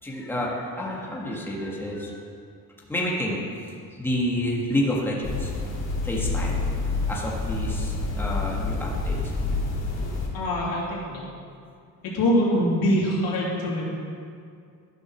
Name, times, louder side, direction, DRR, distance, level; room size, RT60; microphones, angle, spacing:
voice 1, 0.0-2.2 2.9-3.4 3.9-5.5 6.0-6.6 7.1-9.2, left 1 dB, 5° left, -4 dB, 1.6 m, -29 dB
sound 1, 5.2-10.3, left 3 dB, 50° left, 2.5 m, -28 dB
voice 2, 10.3-11.3 12.0-13.9, equal, 90° left, -4 dB, 2.7 m, -24 dB
12.0 x 6.3 x 6.2 m, 2.3 s
cardioid pair, 140°, 35 cm